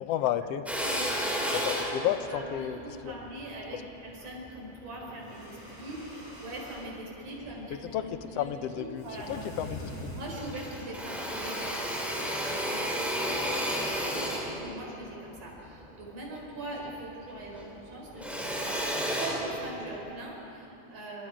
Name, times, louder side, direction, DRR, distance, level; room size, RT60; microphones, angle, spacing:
voice 1, 0.0-0.6 1.5-3.2 7.7-10.1, left 11 dB, 75° left, 11 dB, 1.5 m, -32 dB
Drill, 0.7-5.2 5.8-6.9 7.4-8.3 8.7-8.8 9.0-10.0 10.3-17.0 17.3-20.1, equal, ahead, 3.3 m, -33 dB
voice 2, 0.8-1.6 1.8-9.5 10.1-18.9 19.2-21.3, right 1 dB, 85° right, -1 dB, 5.8 m, -42 dB
sound 1, 5.1-6.9 9.0-10.9, equal, 20° left, 7.5 m, -44 dB
27.5 x 26.0 x 5.0 m, 2.9 s
omnidirectional pair, 3.6 m